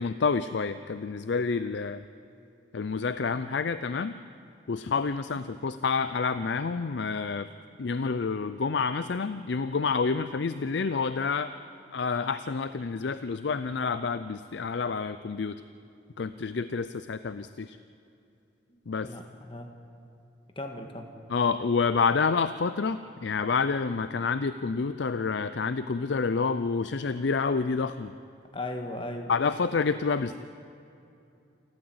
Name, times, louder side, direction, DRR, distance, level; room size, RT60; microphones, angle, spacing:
voice 1, 0.0-2.0 2.7-4.2 4.7-7.5 7.8-11.5 11.9-15.6 16.2-17.8 18.9-19.1 21.3-28.1 29.3-30.4, left 5 dB, 65° left, 12 dB, 0.5 m, -28 dB
voice 2, 18.7-19.7 20.6-21.1 28.5-29.3, left 1 dB, 25° left, 4 dB, 1.7 m, -37 dB
28.0 x 13.0 x 7.9 m, 2.7 s
head